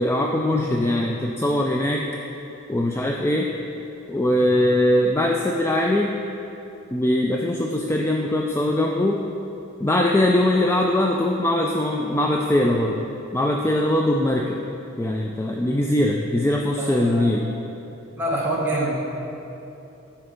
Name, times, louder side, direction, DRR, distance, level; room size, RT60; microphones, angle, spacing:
voice 1, 0.0-2.0 2.7-3.5 4.1-6.1 6.9-9.2 9.8-13.0 13.3-14.6 15.0-17.5, left 1 dB, 10° left, 0 dB, 0.3 m, -21 dB
voice 2, 16.8-17.3 18.2-19.0, right 1 dB, 10° right, -5 dB, 1.2 m, -25 dB
10.0 x 4.4 x 5.1 m, 2.9 s
head